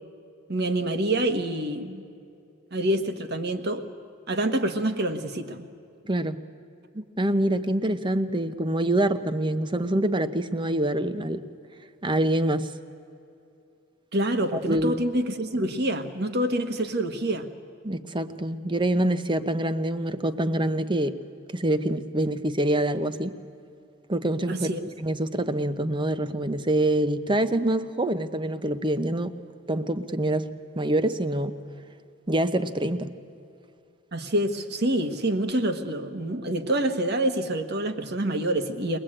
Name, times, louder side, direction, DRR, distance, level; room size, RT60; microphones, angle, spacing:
voice 1, 0.5-2.0 2.7-3.8 4.3-5.7 14.1-17.5 24.5-24.9 34.1-39.0, right 1 dB, 55° right, 8 dB, 1.5 m, -26 dB
voice 2, 6.0-6.4 6.9-11.4 12.0-12.7 14.5-15.0 17.8-21.2 21.5-23.4 24.1-24.7 25.0-29.3 29.7-31.6 32.3-33.1, right 1 dB, 25° right, 11 dB, 0.9 m, -25 dB
23.0 x 20.0 x 8.9 m, 2.6 s
head